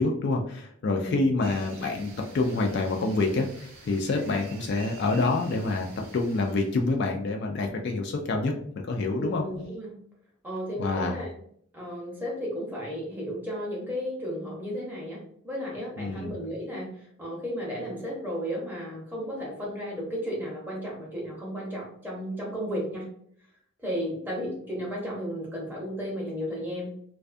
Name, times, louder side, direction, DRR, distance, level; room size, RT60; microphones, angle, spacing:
voice 1, 0.0-5.9 6.1-9.4 10.8-11.2 16.0-16.3, left 3 dB, 50° left, 1 dB, 0.3 m, -27 dB
sound 1, 1.4-6.9, right 3 dB, 85° right, 0.7 m, -48 dB
voice 2, 9.2-10.0 10.4-11.3 11.7-15.2 15.4-23.1 23.8-27.0, equal, 10° right, -4 dB, 0.7 m, -34 dB
2.5 x 2.2 x 2.4 m, 0.65 s
head